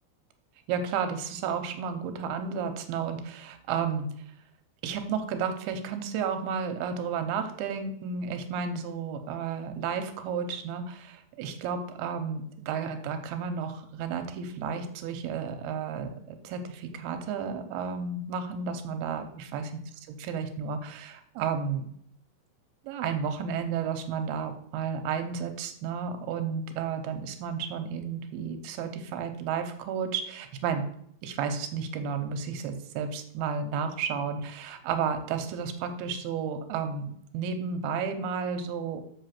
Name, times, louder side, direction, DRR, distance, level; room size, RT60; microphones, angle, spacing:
voice 1, 0.7-4.1 4.8-19.7 20.1-21.9 22.8-30.9 31.2-39.0, right 6 dB, 75° right, 7 dB, 2.4 m, -32 dB
6.5 x 5.3 x 5.8 m, 0.67 s
omnidirectional pair, 5.0 m